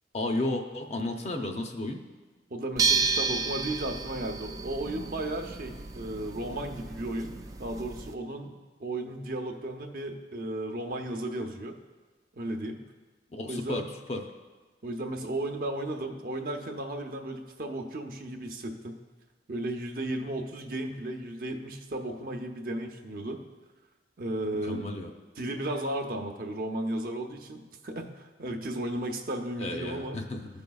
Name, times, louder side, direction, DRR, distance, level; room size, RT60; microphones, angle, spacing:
voice 1, 0.1-2.0 13.3-13.8 14.1-14.2 24.7-25.1 29.6-30.5, left 2 dB, 35° left, 3 dB, 0.6 m, -32 dB
voice 2, 2.5-7.3 7.6-11.8 12.3-12.8 13.4-13.9 14.8-19.0 19.5-23.4 24.2-25.0 25.4-30.2, right 1 dB, 50° right, 3 dB, 0.7 m, -34 dB
sound 1, 2.8-8.1, right 4 dB, 20° right, 0.3 m, -32 dB
14.5 x 5.2 x 2.3 m, 1.3 s
head